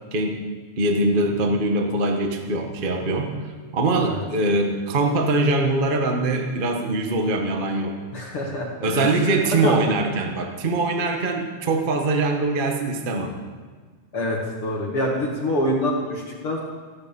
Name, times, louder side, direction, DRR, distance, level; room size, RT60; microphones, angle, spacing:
voice 1, 0.8-3.4 3.7-8.0 8.8-13.4, right 2 dB, 55° right, 3 dB, 0.5 m, -22 dB
voice 2, 8.1-9.8 14.1-16.6, left 1 dB, 50° left, -2 dB, 2.5 m, -26 dB
16.0 x 9.7 x 7.0 m, 1.5 s
omnidirectional pair, 3.5 m